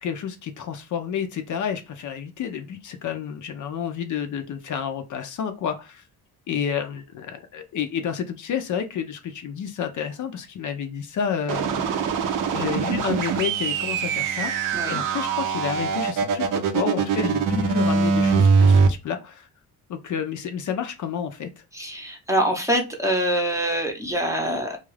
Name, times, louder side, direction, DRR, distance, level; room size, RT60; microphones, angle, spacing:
voice 1, 0.0-6.0 6.5-11.8 12.5-14.5 14.9-16.5 16.7-19.5 19.9-21.5, left 8 dB, 55° left, 7 dB, 0.5 m, -30 dB
sound 1, 11.5-18.9, right 5 dB, 60° right, 0.6 m, -22 dB
voice 2, 21.7-24.8, right 1 dB, 10° right, 1 dB, 0.7 m, -24 dB
2.4 x 2.3 x 3.2 m, 0.27 s
cardioid pair, 105°, 37 cm